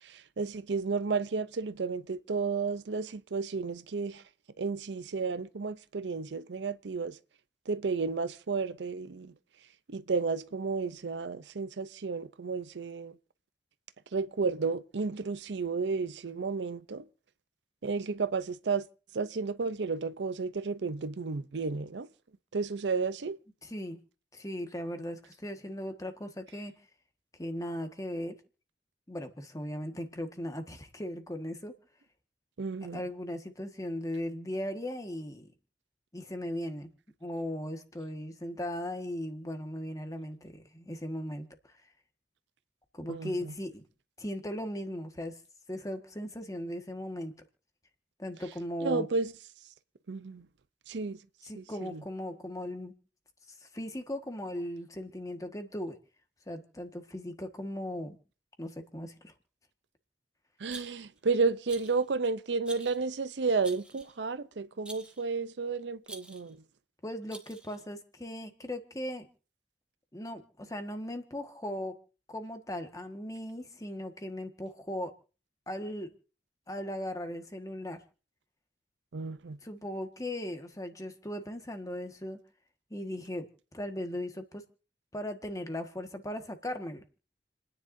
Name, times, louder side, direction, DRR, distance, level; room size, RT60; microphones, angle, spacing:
voice 1, 0.0-4.2 4.6-7.2 7.7-9.3 9.9-13.2 14.1-17.0 17.8-18.8 19.1-22.1 22.5-23.4 32.6-33.0 43.1-43.3 48.8-49.3 50.1-50.5 50.9-51.2 51.5-52.0 60.6-66.6 79.1-79.6, right 4 dB, 80° right, 0.6 m, -32 dB
voice 2, 23.6-24.0 24.3-26.7 27.4-28.3 29.1-31.7 32.8-35.5 36.1-36.9 37.2-41.5 42.9-43.8 44.2-45.4 45.7-47.3 48.2-49.1 51.4-52.9 53.5-55.9 56.5-58.2 58.6-59.3 67.0-69.3 70.1-71.9 72.3-75.1 75.7-76.1 76.7-78.0 79.6-82.4 82.9-83.5 83.7-84.6 85.1-87.0, left 1 dB, 20° left, 1.5 m, -38 dB
Rattle, 60.7-61.2 61.7-62.1 62.6-63.0 63.6-64.2 64.9-65.2 66.0-66.5 67.3-67.8, right 2 dB, 5° right, 1.3 m, -48 dB
29.5 x 10.0 x 2.7 m
head